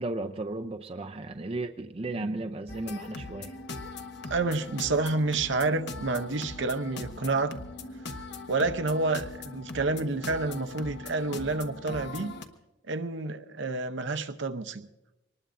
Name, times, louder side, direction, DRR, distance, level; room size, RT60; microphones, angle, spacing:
voice 1, 0.0-3.5, right 2 dB, 30° right, 0.5 m, -35 dB
sound 1, 2.7-12.5, left 3 dB, 55° left, 1.1 m, -40 dB
voice 2, 4.2-7.6 8.5-12.3 12.9-14.9, right 3 dB, 60° right, 0.7 m, -29 dB
24.0 x 19.5 x 2.6 m
head